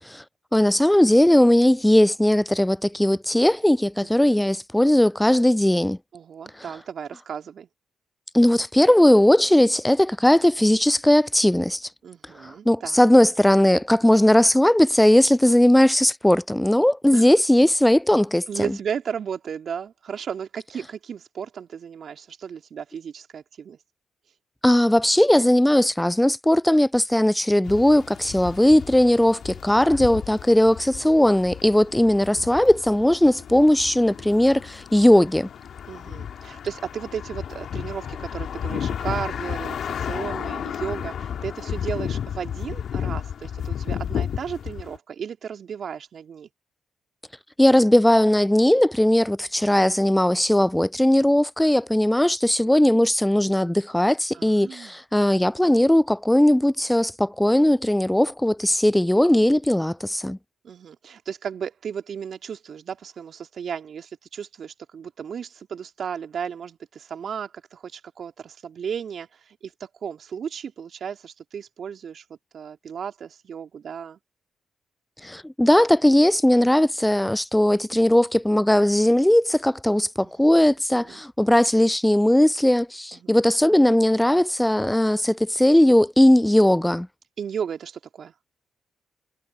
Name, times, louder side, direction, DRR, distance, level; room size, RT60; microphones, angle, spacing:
voice 1, 0.5-6.0 8.3-11.9 12.4-18.5 24.6-35.5 47.6-60.4 75.2-87.1, left 1 dB, 10° left, 0.4 m, -18 dB
voice 2, 4.0-4.3 6.1-7.7 12.0-13.0 17.1-17.3 18.5-23.8 35.9-46.5 54.3-55.0 60.6-74.2 80.2-80.7 81.0-81.2 83.1-83.3 87.4-88.3, right 7 dB, 60° right, 2.7 m, -34 dB
sound 1, 27.7-45.0, left 8 dB, 65° left, 2.3 m, -33 dB
hypercardioid pair, 45°, 0 cm